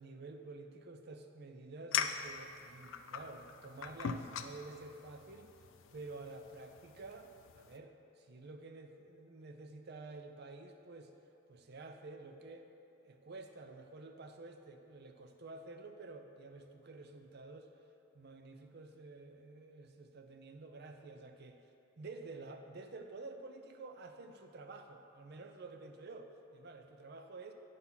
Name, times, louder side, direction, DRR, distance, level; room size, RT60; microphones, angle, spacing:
voice 1, 0.0-5.5 5.9-11.1 11.5-12.7 13.0-17.7 18.1-21.7 22.0-27.5, right 3 dB, 55° right, 5 dB, 0.6 m, -50 dB
sound 1, 1.9-7.8, left 7 dB, 70° left, 0.4 m, -42 dB
9.3 x 4.0 x 5.7 m, 2.9 s
head